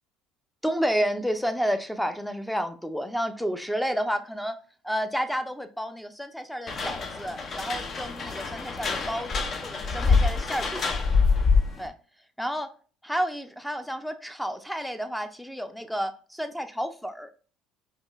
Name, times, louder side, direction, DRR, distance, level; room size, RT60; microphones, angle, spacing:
voice 1, 0.6-4.6 4.8-11.0 11.8-11.9 12.4-12.7 13.0-17.5, equal, ahead, 0.5 m, -30 dB
sound 1, 6.7-11.9, left 4 dB, 40° left, 0.6 m, -25 dB
5.3 x 2.5 x 2.3 m
supercardioid pair, 85°, 0 cm